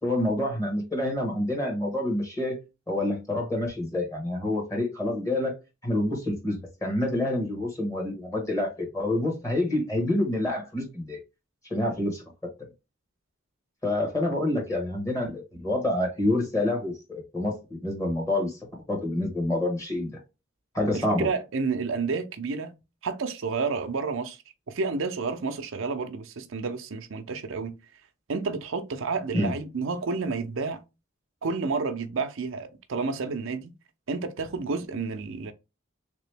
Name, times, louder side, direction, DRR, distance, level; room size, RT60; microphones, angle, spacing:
voice 1, 0.0-2.6 2.9-5.5 5.8-11.2 11.7-12.5 13.8-18.6 18.9-20.1 20.7-21.3 29.3-29.5, left 1 dB, 15° left, 1.2 m, -27 dB
voice 2, 20.9-22.8 23.0-24.4 24.7-27.7 28.3-30.8 31.4-33.7 34.1-35.5, right 4 dB, 75° right, 0.6 m, -30 dB
3.6 x 2.9 x 3.3 m
head